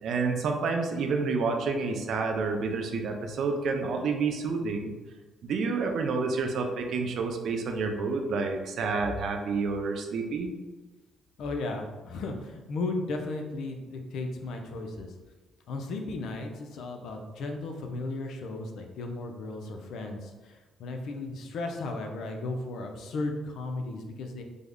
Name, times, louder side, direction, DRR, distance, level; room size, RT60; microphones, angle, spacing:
voice 1, 0.0-4.9 5.4-10.5, right 4 dB, 70° right, 4 dB, 0.4 m, -29 dB
voice 2, 11.4-15.1 15.7-24.4, left 2 dB, 75° left, 4 dB, 0.4 m, -35 dB
3.4 x 2.0 x 3.5 m, 1.2 s
cardioid pair, 90°, 0 cm